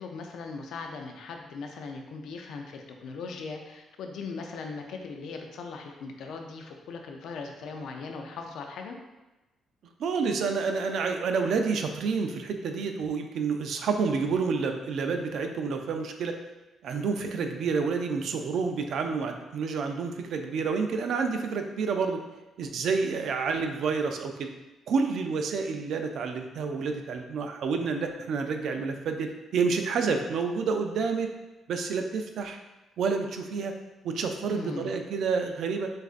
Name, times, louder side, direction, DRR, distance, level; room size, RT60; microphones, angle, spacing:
voice 1, 0.0-9.0 34.5-34.9, left 4 dB, 75° left, 3 dB, 0.5 m, -39 dB
voice 2, 10.0-16.3 16.8-22.2 22.6-24.5 24.9-31.3 31.7-32.6 33.0-33.7 34.0-35.9, right 5 dB, 70° right, 5 dB, 0.5 m, -29 dB
6.3 x 2.5 x 2.5 m, 1.1 s
cardioid pair, 90°, 0 cm